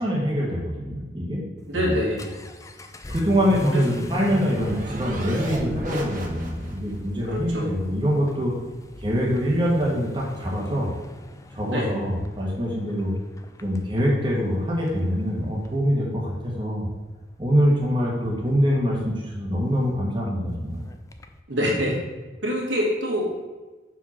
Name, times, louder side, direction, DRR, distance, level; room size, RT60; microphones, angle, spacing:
voice 1, 0.0-1.4 1.7-1.9 3.1-8.5 9.0-10.9 11.5-13.1 13.6-16.9 17.4-20.8, equal, 25° right, -4 dB, 1.3 m, -24 dB
Vehicle / Accelerating revving vroom, 1.6-21.4, left 1 dB, 15° left, 0.4 m, -39 dB
voice 2, 1.7-2.3 3.7-3.9 4.4-4.5 7.3-8.0 11.7-12.0 21.5-22.0 22.4-23.4, equal, 80° right, -3 dB, 2.1 m, -26 dB
sound 1, 3.7-6.9, right 1 dB, 45° right, 1.3 m, -35 dB
5.7 x 4.8 x 5.9 m, 1.3 s
head